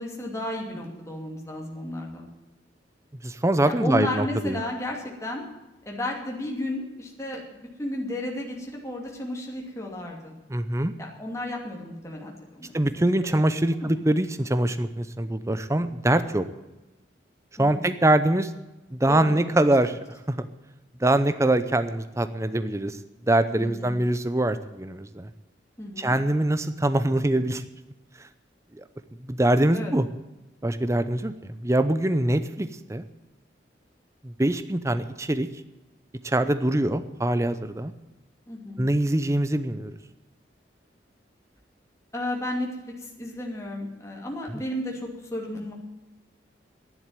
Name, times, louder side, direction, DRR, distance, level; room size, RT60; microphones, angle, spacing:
voice 1, 0.0-2.3 3.7-5.4 5.9-10.3 11.0-13.9 17.6-17.9 19.1-19.7 23.6-23.9 25.8-26.1 29.7-29.9 32.3-32.4 38.5-38.9 42.1-42.7 43.0-45.7, left 1 dB, 15° left, -1 dB, 2.7 m, -33 dB
voice 2, 3.2-4.6 10.5-10.9 12.7-16.4 17.6-18.5 18.9-19.9 20.3-20.5 21.0-23.0 23.3-25.3 26.0-27.6 28.8-28.9 29.3-30.1 30.6-33.0 34.2-35.5 36.2-37.9 38.8-40.0, right 1 dB, 15° right, 11 dB, 0.7 m, -23 dB
11.5 x 11.0 x 9.0 m, 1.0 s
head